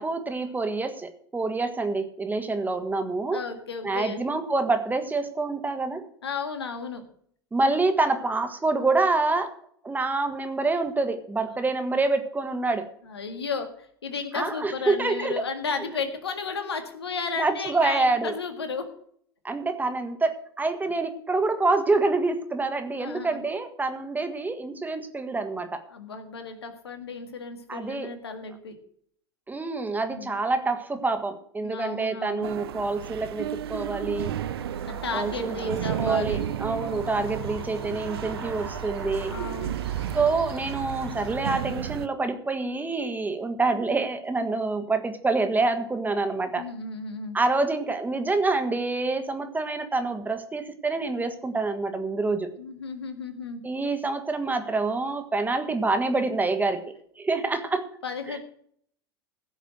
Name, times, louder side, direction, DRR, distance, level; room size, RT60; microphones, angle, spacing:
voice 1, 0.0-3.4 3.8-6.0 7.5-9.6 9.8-12.9 14.3-15.4 17.4-18.4 19.4-25.8 27.7-28.1 29.5-34.4 35.1-39.3 40.1-46.7 47.3-52.5 53.6-58.0 58.3-58.4, right 3 dB, 15° right, 8 dB, 1.6 m, -27 dB
voice 2, 3.3-4.2 6.2-7.0 11.4-11.5 13.1-18.9 23.0-23.4 25.9-28.7 30.1-30.3 31.6-32.5 34.8-36.4 39.3-39.8 46.6-47.4 52.6-53.6 58.0-58.4, left 5 dB, 80° left, 7 dB, 1.9 m, -34 dB
sound 1, 32.4-42.1, right 11 dB, 70° right, 0.6 m, -33 dB
sound 2, 34.0-41.4, right 1 dB, 90° right, 3.6 m, -41 dB
16.0 x 6.6 x 6.3 m, 0.63 s
figure-of-eight pair, 85°, 13 cm